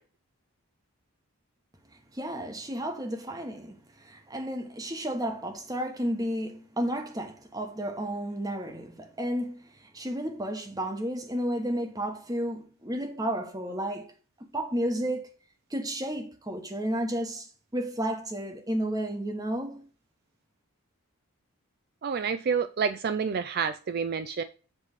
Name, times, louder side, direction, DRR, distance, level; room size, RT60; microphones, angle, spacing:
voice 1, 2.1-14.1 14.4-15.3 15.7-19.9, right 1 dB, 15° right, 1.0 m, -32 dB
voice 2, 22.0-24.4, right 6 dB, 45° right, 0.3 m, -28 dB
7.5 x 3.2 x 6.3 m
head